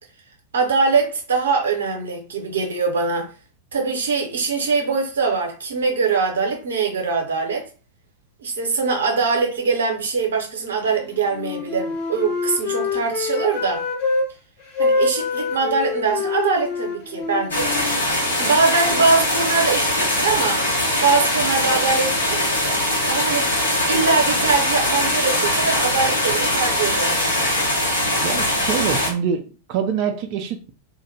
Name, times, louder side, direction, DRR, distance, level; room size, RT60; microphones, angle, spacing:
voice 1, 0.5-3.3 3.7-7.7 8.4-13.8 14.8-17.7 18.4-20.7 21.0-22.4 23.1-23.5 23.9-27.2, right 4 dB, 65° right, 0.8 m, -22 dB
Wind instrument woodwind instrument, 11.3-14.3 14.7-18.6, left 4 dB, 45° left, 1.0 m, -25 dB
sound 1, 17.5-29.1, left 1 dB, 70° left, 1.1 m, -21 dB
voice 2, 28.1-30.7, right 7 dB, 45° right, 0.4 m, -25 dB
2.4 x 2.1 x 3.2 m
figure-of-eight pair, 90°, 0 cm